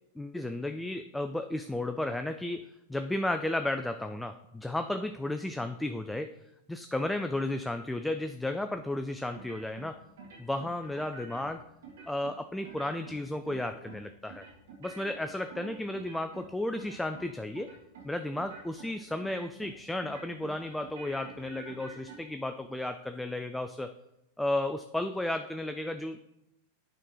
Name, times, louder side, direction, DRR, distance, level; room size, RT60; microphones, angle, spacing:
voice 1, 0.2-6.3 6.7-10.0 10.4-11.6 12.1-14.5 14.8-17.7 18.0-23.9 24.4-26.2, left 1 dB, 5° left, 8 dB, 0.4 m, -33 dB
sound 1, 9.3-9.9 10.2-11.5 11.8-12.3 12.6-13.2 13.5-14.0 14.3-16.5 16.7-17.3 17.5-18.1 18.4-18.9 19.2-19.7 20.0-22.2, right 4 dB, 70° right, 2.0 m, -47 dB
9.0 x 3.8 x 4.7 m, 0.85 s
hypercardioid pair, 95°, 0 cm